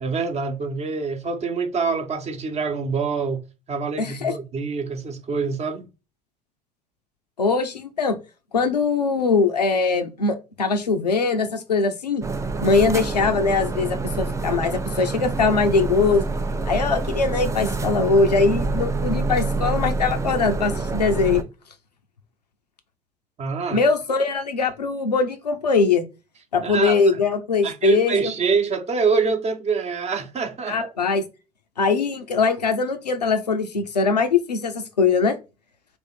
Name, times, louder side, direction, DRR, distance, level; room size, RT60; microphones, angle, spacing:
voice 1, 0.0-5.9 23.4-23.8 26.6-27.2 27.6-30.9, right 5 dB, 30° right, 0.9 m, -25 dB
voice 2, 4.0-4.3 7.4-8.2 8.5-12.2 12.6-16.3 16.7-21.4 23.7-26.0 26.5-28.2 30.7-31.2 31.8-35.4, left 4 dB, 90° left, 0.6 m, -21 dB
sound 1, 12.2-21.4, right 3 dB, 15° right, 0.5 m, -26 dB
3.5 x 3.1 x 4.3 m
figure-of-eight pair, 65°, 20 cm